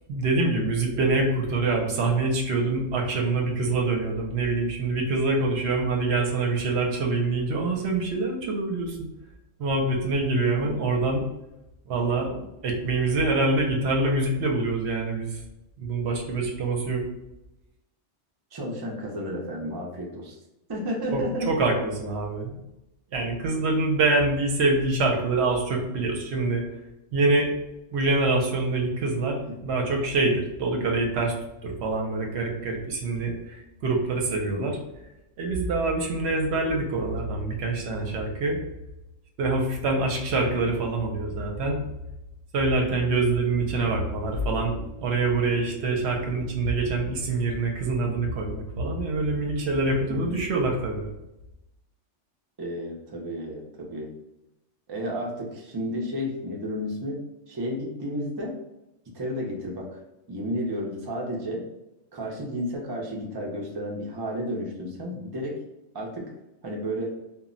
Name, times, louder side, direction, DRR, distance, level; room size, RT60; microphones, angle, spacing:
voice 1, 0.1-9.1 9.6-11.2 11.9-15.4 15.8-17.0 21.1-22.6 23.1-26.6 27.1-27.5 27.9-31.3 31.6-34.8 35.4-38.6 39.4-41.8 42.5-51.1, right 3 dB, 70° right, 1 dB, 0.8 m, -25 dB
voice 2, 18.5-20.4 20.7-21.5 29.4-29.5 34.4-34.7 50.1-50.4 52.6-54.1 54.9-57.2 57.5-58.5 59.1-60.0 60.3-61.6 62.1-65.6 65.9-66.3 66.6-67.1, equal, 35° right, -2 dB, 0.3 m, -32 dB
2.2 x 2.0 x 3.7 m, 0.93 s
omnidirectional pair, 1.2 m